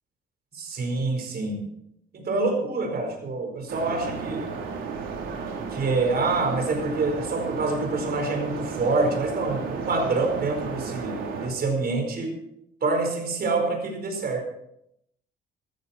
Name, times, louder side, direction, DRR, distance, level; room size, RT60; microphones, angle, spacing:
voice 1, 0.5-1.6 2.1-4.6 5.7-11.2 11.4-12.4 12.8-14.5, right 3 dB, 50° right, 3 dB, 4.6 m, -26 dB
sound 1, 3.7-11.5, right 5 dB, 85° right, 3.5 m, -33 dB
14.5 x 14.0 x 4.4 m, 0.78 s
cardioid pair, 90°, 20 cm